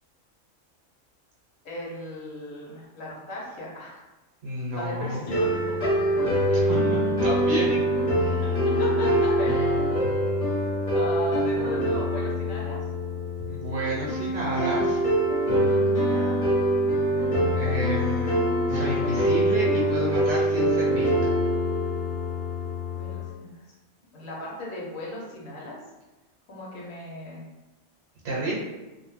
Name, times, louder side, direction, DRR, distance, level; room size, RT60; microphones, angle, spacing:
voice 1, 1.6-4.0 4.7-5.9 8.4-9.8 10.9-12.8 16.0-16.4 23.0-23.6 24.1-25.8 26.5-27.4, left 1 dB, 90° left, -4 dB, 1.2 m, -36 dB
voice 2, 4.4-5.3 6.5-7.8 8.2-8.4 13.4-15.0 17.6-18.4 18.7-21.1 28.2-28.6, right 1 dB, 70° right, -5 dB, 1.0 m, -30 dB
sound 1, 5.3-23.3, equal, 35° left, 0.7 m, -24 dB
2.6 x 2.1 x 3.0 m, 1.1 s
omnidirectional pair, 1.3 m